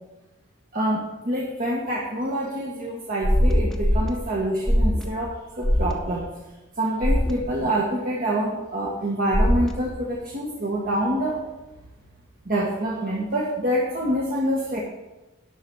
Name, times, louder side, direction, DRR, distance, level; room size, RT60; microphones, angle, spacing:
voice 1, 0.7-6.2 6.8-11.4 12.4-14.8, right 1 dB, 45° right, -3 dB, 1.3 m, -26 dB
sound 1, 3.2-4.1 4.7-5.0 5.6-5.9 7.0-7.3 9.3-9.7, equal, ahead, 0.7 m, -20 dB
11.5 x 4.2 x 7.8 m, 1.1 s
head